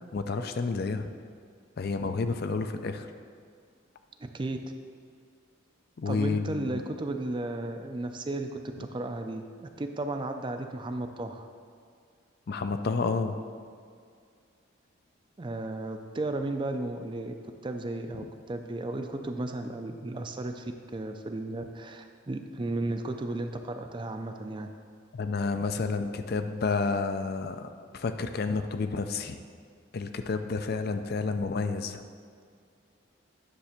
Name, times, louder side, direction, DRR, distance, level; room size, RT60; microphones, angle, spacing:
voice 1, 0.1-1.1 1.8-3.1 6.0-6.8 12.5-13.4 25.1-29.4 29.9-32.0, left 4 dB, 50° left, 8 dB, 0.4 m, -30 dB
voice 2, 4.2-4.6 6.1-8.5 8.8-11.5 15.4-17.3 17.6-24.7, right 2 dB, 25° right, 6 dB, 0.4 m, -34 dB
9.9 x 3.3 x 6.5 m, 2.2 s
head